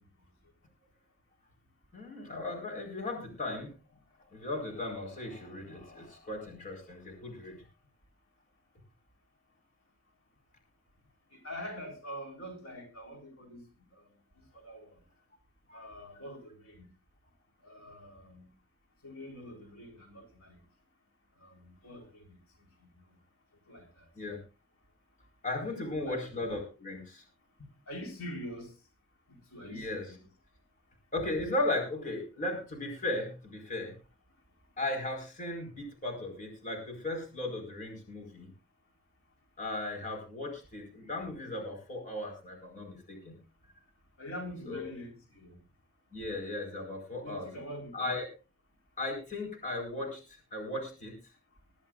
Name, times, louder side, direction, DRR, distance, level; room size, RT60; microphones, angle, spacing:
voice 1, 1.9-3.7 4.3-7.6 15.7-15.8 24.1-24.4 25.4-27.2 29.6-30.0 31.1-34.0 34.8-38.5 39.6-43.4 44.7-44.9 46.1-47.5 47.9-48.3 49.0-50.2 50.5-51.1, left 2 dB, 40° left, 3 dB, 4.9 m, -36 dB
voice 2, 11.3-13.6 13.9-14.1 14.5-15.0 15.7-16.9 17.6-18.5 19.0-20.6 21.4-22.4 22.8-23.0 23.7-24.1 25.7-26.2 27.9-28.7 29.5-30.3 44.2-45.6 47.2-48.1, equal, 85° left, 2 dB, 4.1 m, -45 dB
20.5 x 13.0 x 2.5 m, 0.31 s
head